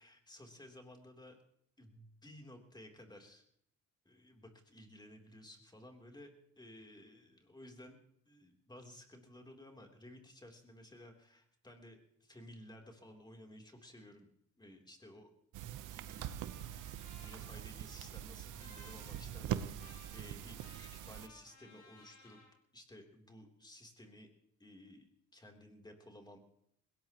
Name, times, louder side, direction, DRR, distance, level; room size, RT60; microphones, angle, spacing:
voice 1, 0.0-1.4 1.8-3.4 4.0-8.0 8.2-14.3 14.6-15.3 15.9-22.4 22.7-24.3 24.6-26.4, left 1 dB, 15° left, 2 dB, 3.4 m, -56 dB
sound 1, 15.5-21.3, right 11 dB, 85° right, 0.9 m, -43 dB
Trumpet, 15.7-22.5, left 4 dB, 80° left, 5.6 m, -61 dB
20.5 x 18.0 x 3.1 m, 0.69 s
cardioid pair, 90°, 30 cm